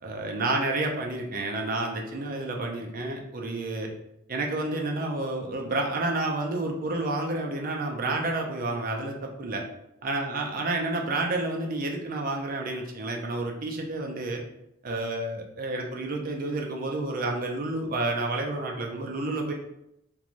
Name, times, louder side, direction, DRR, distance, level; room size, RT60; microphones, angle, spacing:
voice 1, 0.0-3.9 4.3-9.6 10.0-14.4 14.8-19.5, right 2 dB, 40° right, 1 dB, 0.4 m, -30 dB
2.5 x 2.2 x 3.0 m, 0.82 s
head